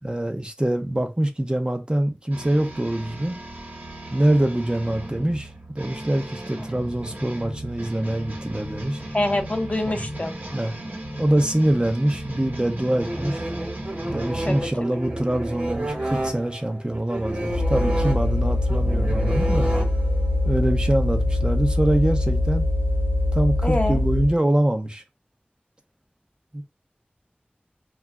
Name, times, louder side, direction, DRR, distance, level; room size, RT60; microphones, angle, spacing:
voice 1, 0.0-3.4 4.1-9.0 9.9-10.1 10.5-10.7 11.2-13.4 14.1-19.7 20.4-22.7 23.3-25.0 26.5-26.6, right 1 dB, 30° right, 0.5 m, -24 dB
sound 1, 2.3-14.6, right 1 dB, 75° right, 0.9 m, -36 dB
voice 2, 9.1-10.3 14.5-14.6 19.7-19.8 23.6-24.0, left 1 dB, 40° left, 0.5 m, -25 dB
sound 2, 12.9-20.4, right 1 dB, 45° right, 1.0 m, -30 dB
sound 3, 17.5-24.4, left 1 dB, 70° left, 0.9 m, -23 dB
2.3 x 2.0 x 3.4 m
wide cardioid pair, 45°, 3 cm